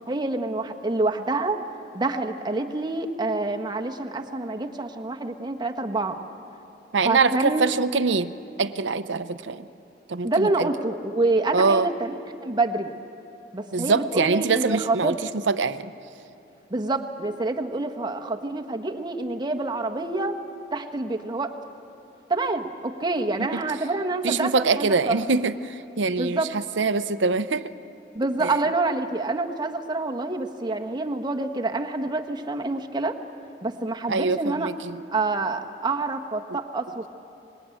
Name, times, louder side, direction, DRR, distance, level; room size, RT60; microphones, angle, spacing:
voice 1, 0.1-1.6 1.9-6.2 7.0-7.7 10.2-12.1 12.4-12.9 13.5-15.2 16.7-20.4 20.7-21.5 22.3-25.2 26.2-26.5 28.1-33.2 33.6-34.7 35.1-37.1, right 2 dB, 25° right, 4 dB, 1.3 m, -27 dB
voice 2, 6.9-8.3 8.6-9.7 10.1-10.7 11.5-11.9 13.7-15.9 24.2-27.7 28.4-28.5 34.1-35.0, right 4 dB, 80° right, 12 dB, 0.7 m, -24 dB
25.5 x 21.0 x 9.1 m, 2.8 s
head